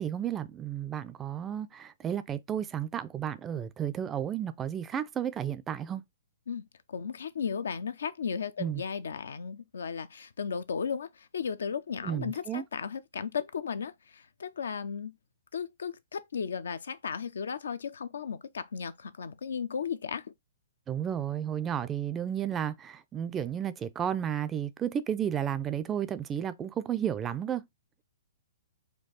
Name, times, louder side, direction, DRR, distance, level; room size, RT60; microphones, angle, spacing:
voice 1, 0.0-6.0 8.6-8.8 12.0-12.6 20.9-27.6, right 9 dB, 20° right, 0.4 m, -32 dB
voice 2, 6.9-15.1 15.5-20.3, left 6 dB, 75° left, 0.5 m, -35 dB
4.4 x 2.3 x 3.8 m
hypercardioid pair, 120°, 0 cm